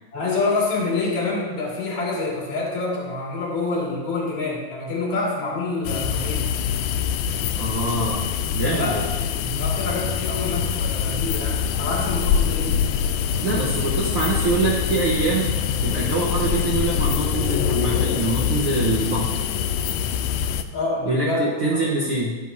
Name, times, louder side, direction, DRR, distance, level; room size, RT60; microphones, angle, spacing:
voice 1, 0.1-6.5 8.6-12.7 20.7-21.9, left 3 dB, 60° left, -4 dB, 3.6 m, -27 dB
sound 1, 5.8-20.6, left 8 dB, 85° left, 1.6 m, -24 dB
voice 2, 7.6-8.2 8.5-9.0 13.4-15.5 15.8-19.3 21.0-22.3, right 2 dB, 55° right, -5 dB, 1.6 m, -24 dB
11.0 x 10.5 x 2.8 m, 1.3 s
omnidirectional pair, 3.7 m